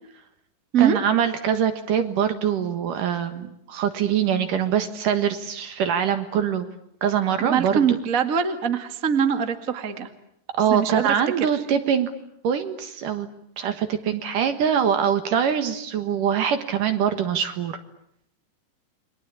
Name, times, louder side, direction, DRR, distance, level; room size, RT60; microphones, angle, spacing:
voice 1, 0.8-6.7 7.0-7.8 10.5-12.1 12.4-13.3 13.6-17.8, right 8 dB, 60° right, 9 dB, 2.7 m, -23 dB
voice 2, 7.4-10.1 10.7-11.1, right 7 dB, 40° right, 8 dB, 1.1 m, -22 dB
30.0 x 23.0 x 8.5 m, 0.73 s
omnidirectional pair, 5.0 m